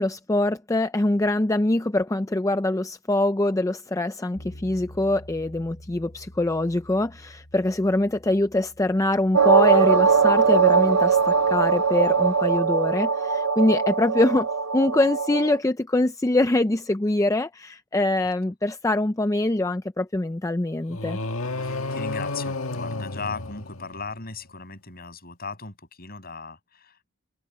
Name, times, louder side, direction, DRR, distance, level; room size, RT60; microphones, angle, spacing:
voice 1, 0.0-14.5 14.7-21.2, left 2 dB, 15° left, 0.5 m, -24 dB
sound 1, 4.3-12.5, equal, 90° left, 3.8 m, -48 dB
sound 2, 9.3-15.6, right 6 dB, 85° right, 1.0 m, -20 dB
sound 3, 20.9-24.2, left 2 dB, 70° left, 1.9 m, -31 dB
voice 2, 21.6-27.2, left 4 dB, 45° left, 6.7 m, -37 dB
head